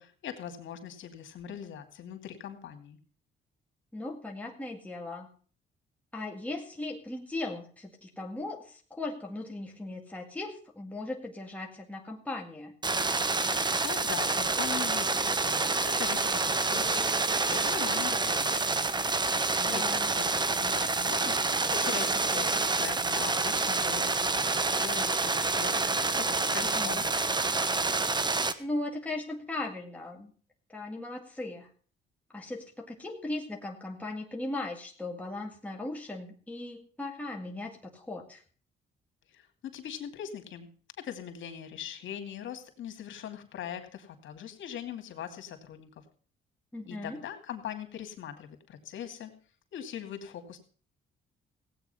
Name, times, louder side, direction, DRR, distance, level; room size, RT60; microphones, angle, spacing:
voice 1, 0.0-3.0 13.8-18.8 19.6-24.1 24.3-27.3 39.3-40.7 41.0-46.0 46.9-49.3 49.7-50.6, left 9 dB, 70° left, 6 dB, 2.6 m, -41 dB
voice 2, 3.9-5.3 6.1-12.7 19.6-20.1 26.6-27.0 28.6-30.3 30.7-31.7 32.3-38.4 46.7-47.2, left 2 dB, 5° left, 0 dB, 2.1 m, -38 dB
sound 1, 12.8-28.5, right 3 dB, 20° right, 1.0 m, -28 dB
16.5 x 8.8 x 5.6 m, 0.43 s
cardioid pair, 90°, 20 cm